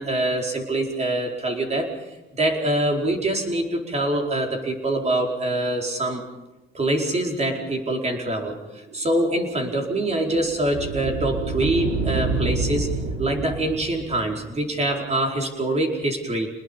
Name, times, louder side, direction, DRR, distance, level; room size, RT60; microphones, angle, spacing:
voice 1, 0.0-1.9 2.3-6.2 6.7-12.9 13.2-16.5, right 1 dB, 35° right, 2 dB, 4.7 m, -24 dB
sound 1, 8.9-14.5, right 3 dB, 85° right, 3.6 m, -29 dB
28.5 x 20.5 x 5.5 m, 1.0 s
cardioid pair, 90°, 20 cm